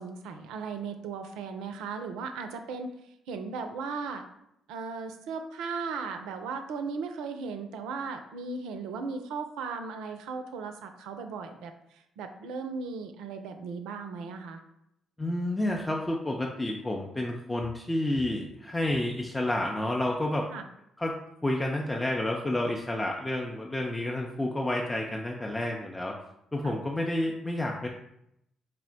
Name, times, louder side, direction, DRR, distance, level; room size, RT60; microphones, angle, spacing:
voice 1, 0.0-2.9 3.3-4.2 4.7-14.6 20.5-20.6 26.6-26.8, right 4 dB, 70° right, 7 dB, 0.3 m, -37 dB
voice 2, 15.2-20.5 21.0-21.2 21.4-26.1 26.5-27.9, left 1 dB, 15° left, -1 dB, 0.5 m, -30 dB
4.2 x 2.0 x 4.0 m, 0.79 s
figure-of-eight pair, 45°, 0 cm